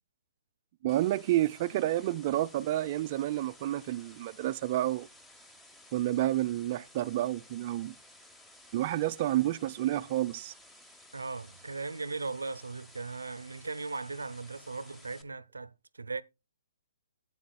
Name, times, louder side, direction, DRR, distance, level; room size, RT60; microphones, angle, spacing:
voice 1, 0.8-5.1 5.9-8.0 8.7-10.5, right 14 dB, 40° right, 0.4 m, -30 dB
sound 1, 0.9-15.2, left 1 dB, 5° left, 0.9 m, -56 dB
voice 2, 11.1-16.2, right 3 dB, 90° right, 0.5 m, -38 dB
11.5 x 8.3 x 2.3 m
hypercardioid pair, 135°, 0 cm